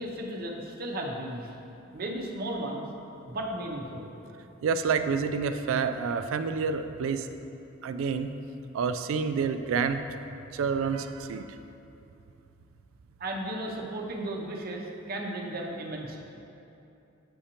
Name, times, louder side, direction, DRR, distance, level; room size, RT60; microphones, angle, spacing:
voice 1, 0.0-1.6 1.9-2.8 3.2-4.1 13.2-16.2, right 1 dB, 50° right, 0 dB, 0.6 m, -35 dB
voice 2, 4.6-7.3 7.8-8.3 8.7-10.0 10.5-11.5, right 5 dB, 90° right, 9 dB, 0.3 m, -28 dB
7.6 x 5.0 x 2.9 m, 2.8 s
head